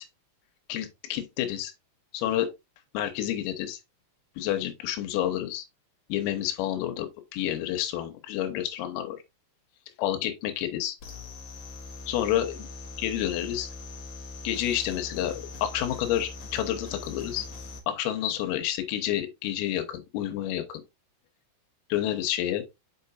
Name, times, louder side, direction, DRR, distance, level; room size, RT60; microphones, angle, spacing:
voice 1, 0.7-1.7 2.1-2.5 3.0-3.8 4.4-5.7 6.1-9.2 10.0-11.0 12.1-12.7 13.0-13.7 14.5-17.5 17.9-20.8 21.9-22.6, left 12 dB, 85° left, 3.7 m, -29 dB
sound 1, 11.0-17.8, left 3 dB, 50° left, 2.2 m, -41 dB
7.5 x 5.7 x 2.6 m
omnidirectional pair, 6.0 m